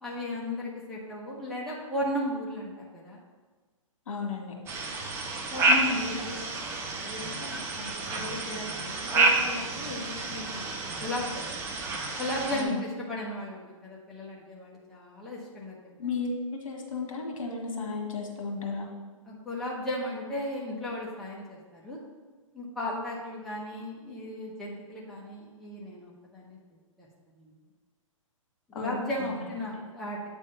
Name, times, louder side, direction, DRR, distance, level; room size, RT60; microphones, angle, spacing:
voice 1, 0.0-3.2 5.5-6.4 6.9-11.6 12.2-15.8 19.2-22.0 22.5-26.6 27.0-27.1 27.4-27.5 28.7-30.3, left 1 dB, ahead, -6 dB, 1.0 m, -35 dB
voice 2, 4.1-4.5 12.5-12.8 16.0-16.3 16.6-18.9 28.7-29.4, left 4 dB, 70° left, 1 dB, 1.7 m, -34 dB
sound 1, 4.7-12.6, right 3 dB, 15° right, 0.6 m, -29 dB
8.1 x 3.6 x 5.5 m, 1.4 s
hypercardioid pair, 145°, 17 cm